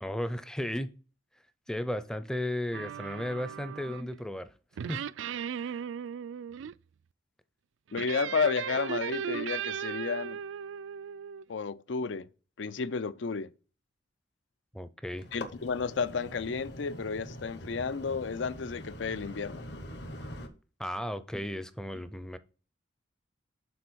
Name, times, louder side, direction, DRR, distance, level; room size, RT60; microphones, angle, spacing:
voice 1, 0.0-0.9 1.7-4.5 4.8-5.0 5.5-5.8 14.7-15.3 20.8-22.4, left 1 dB, 5° left, 0.5 m, -35 dB
sound 1, 2.7-4.1 4.8-6.7 7.9-11.4, right 8 dB, 80° right, 0.3 m, -37 dB
voice 2, 7.9-10.4 11.5-12.3 12.6-13.5 15.3-19.7, left 5 dB, 75° left, 0.5 m, -32 dB
sound 2, 15.1-20.5, left 1 dB, 60° left, 1.3 m, -44 dB
7.1 x 4.1 x 6.2 m
head